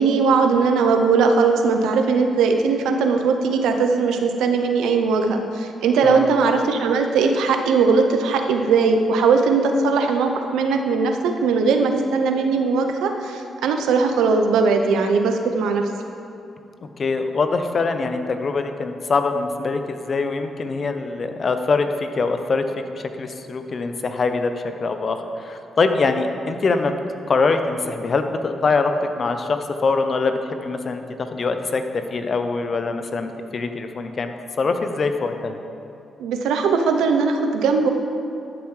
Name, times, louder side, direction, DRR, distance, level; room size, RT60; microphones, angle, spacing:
voice 1, 0.0-15.9 36.2-37.9, right 4 dB, 85° right, 5 dB, 0.7 m, -19 dB
voice 2, 6.0-6.3 17.0-22.6 23.0-24.5 24.8-26.9 27.3-34.3 34.6-35.6, left 4 dB, 50° left, 7 dB, 0.7 m, -23 dB
12.5 x 7.0 x 3.2 m, 2.6 s
supercardioid pair, 60°, 0 cm